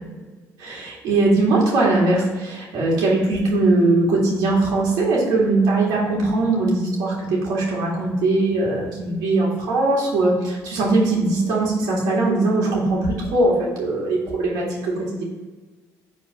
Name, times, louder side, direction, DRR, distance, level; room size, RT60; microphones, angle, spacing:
voice 1, 0.6-15.2, right 2 dB, 80° right, -5 dB, 2.2 m, -20 dB
5.3 x 4.1 x 5.9 m, 1.3 s
cardioid pair, 125°, 6 cm